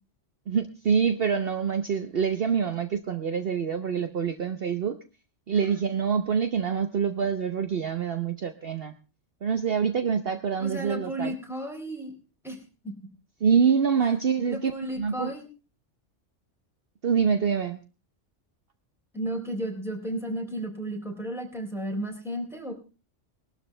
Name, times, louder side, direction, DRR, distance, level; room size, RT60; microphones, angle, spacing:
voice 1, 0.5-5.0 5.5-8.9 9.4-11.3 13.4-14.7 15.0-15.3 17.0-17.8, right 6 dB, 55° right, 9 dB, 1.1 m, -25 dB
voice 2, 10.6-12.2 12.4-12.6 12.8-12.9 14.5-15.5 19.1-22.7, right 1 dB, ahead, 2 dB, 4.0 m, -33 dB
20.5 x 12.5 x 3.3 m, 0.32 s
omnidirectional pair, 1.2 m